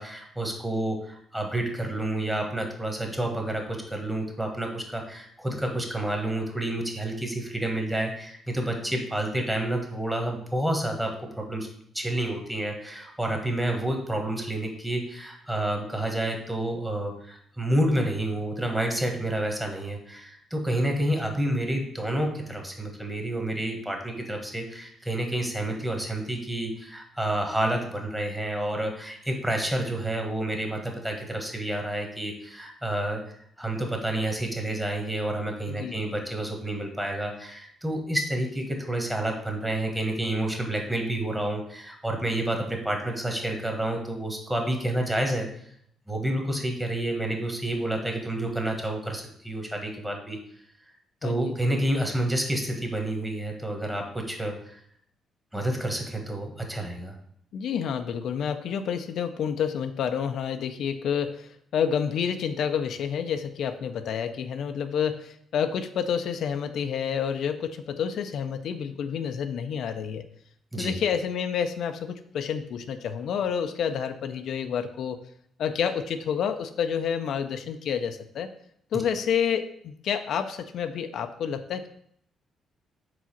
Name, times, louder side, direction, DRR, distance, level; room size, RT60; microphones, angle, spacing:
voice 1, 0.0-11.7 11.9-33.2 33.6-45.5 46.1-50.4 51.2-54.8 55.5-57.1 70.7-71.0, right 1 dB, 10° right, 2 dB, 1.4 m, -29 dB
voice 2, 35.7-36.0 51.2-51.6 57.5-70.2 70.8-75.2 75.6-78.5 78.9-81.9, left 7 dB, 70° left, 8 dB, 0.4 m, -29 dB
4.8 x 3.9 x 5.8 m, 0.67 s
cardioid pair, 90°, 0 cm